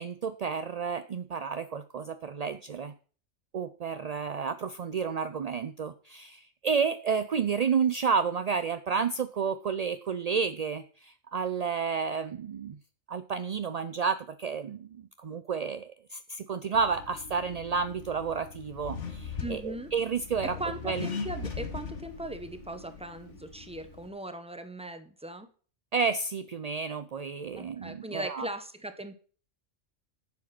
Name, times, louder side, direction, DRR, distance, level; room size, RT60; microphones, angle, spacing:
voice 1, 0.0-2.9 3.5-12.8 13.1-20.6 20.9-21.1 25.9-28.5, right 6 dB, 55° right, 11 dB, 0.4 m, -31 dB
Accelerating revving vroom, 16.7-24.1, left 5 dB, 70° left, 1.9 m, -40 dB
voice 2, 19.4-19.9 20.4-25.5 27.6-29.2, right 1 dB, 5° right, 9 dB, 1.0 m, -39 dB
10.5 x 7.3 x 6.0 m, 0.41 s
omnidirectional pair, 1.3 m